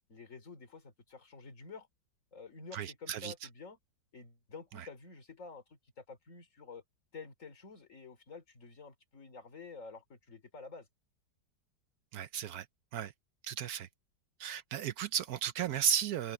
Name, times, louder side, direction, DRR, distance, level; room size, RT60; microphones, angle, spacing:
voice 1, 0.1-1.9 2.3-3.8 4.1-6.8 7.1-10.9, left 4 dB, 45° left, 3.2 m, -50 dB
voice 2, 2.7-3.3 4.8-4.9 12.1-12.7 12.9-13.1 13.4-13.9 14.4-16.3, right 9 dB, 65° right, 1.0 m, -34 dB
omnidirectional pair, 1.9 m